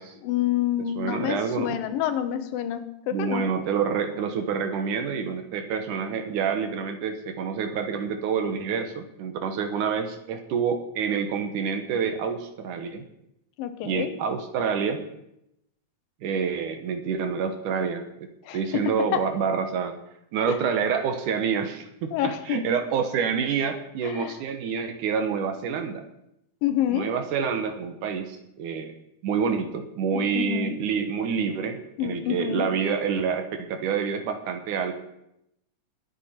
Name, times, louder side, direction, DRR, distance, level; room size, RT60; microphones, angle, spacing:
voice 1, 0.2-3.4 13.6-14.2 18.5-19.3 22.1-22.6 24.0-24.3 26.6-27.1 30.1-30.7 32.0-32.7, left 11 dB, 80° left, 10 dB, 2.7 m, -28 dB
voice 2, 1.0-1.8 3.1-13.0 13.8-15.1 16.2-18.3 18.5-20.0 20.3-26.1 26.9-28.9 29.2-34.9, right 6 dB, 70° right, 7 dB, 2.4 m, -27 dB
23.5 x 8.2 x 4.3 m, 0.81 s
omnidirectional pair, 4.0 m